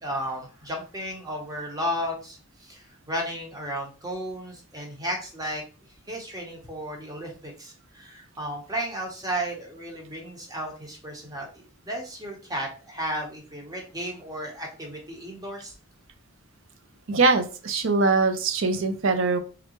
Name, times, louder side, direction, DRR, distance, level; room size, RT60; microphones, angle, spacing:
voice 1, 0.0-5.6 6.1-15.7, equal, 15° right, 1 dB, 0.9 m, -34 dB
voice 2, 17.1-19.4, right 3 dB, 65° right, 8 dB, 0.5 m, -22 dB
3.7 x 3.3 x 3.0 m, 0.36 s
head